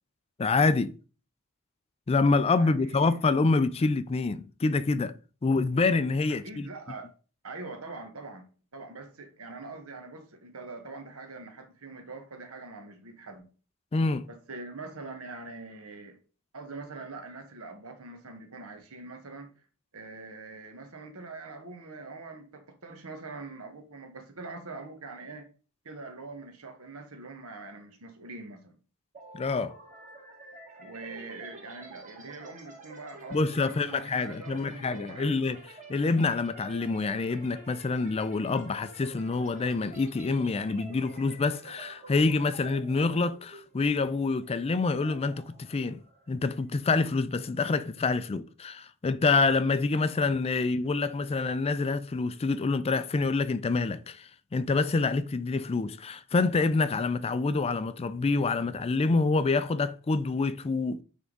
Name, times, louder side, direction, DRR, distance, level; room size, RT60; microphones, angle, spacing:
voice 1, 0.4-0.9 2.1-5.1 5.4-6.7 13.9-14.3 29.3-29.8 33.3-35.6 35.9-46.0 46.3-61.0, left 3 dB, 30° left, 0.4 m, -27 dB
voice 2, 2.6-3.2 6.3-7.1 7.4-8.5 8.7-13.5 14.3-16.2 16.5-19.5 19.9-25.5 25.8-28.8 30.8-35.5, right 3 dB, 80° right, 1.4 m, -43 dB
sound 1, 29.1-46.9, right 2 dB, 35° right, 1.8 m, -50 dB
9.1 x 3.6 x 3.9 m
head